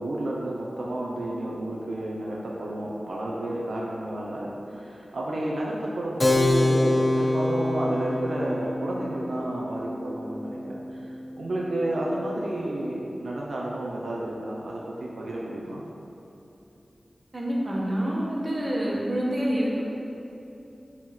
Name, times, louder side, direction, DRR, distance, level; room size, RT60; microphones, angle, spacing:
voice 1, 0.0-15.8, right 1 dB, 85° right, -3 dB, 0.9 m, -31 dB
Keyboard (musical), 6.2-12.3, left 2 dB, 30° left, 0.7 m, -27 dB
voice 2, 17.3-19.8, equal, 35° right, -4 dB, 1.4 m, -27 dB
6.5 x 4.5 x 6.0 m, 2.9 s
wide cardioid pair, 95°, 0 cm